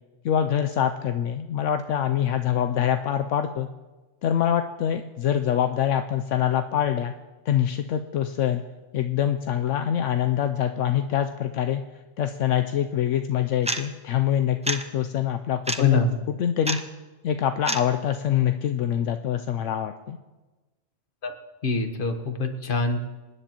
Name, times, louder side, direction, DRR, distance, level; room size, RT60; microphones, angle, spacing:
voice 1, 0.2-3.7 4.2-7.1 7.5-8.6 8.9-11.8 12.2-16.0 16.3-16.8 17.2-20.2, left 10 dB, 75° left, 7 dB, 0.9 m, -25 dB
sound 1, 13.7-13.8 14.7-14.8 15.7-15.8 16.7-16.8 17.7-17.8, right 1 dB, 10° right, 0.3 m, -26 dB
voice 2, 15.8-16.1 21.2-21.3 21.6-23.0, left 4 dB, 45° left, 6 dB, 1.3 m, -24 dB
27.0 x 9.9 x 3.0 m, 1.2 s
omnidirectional pair, 1.3 m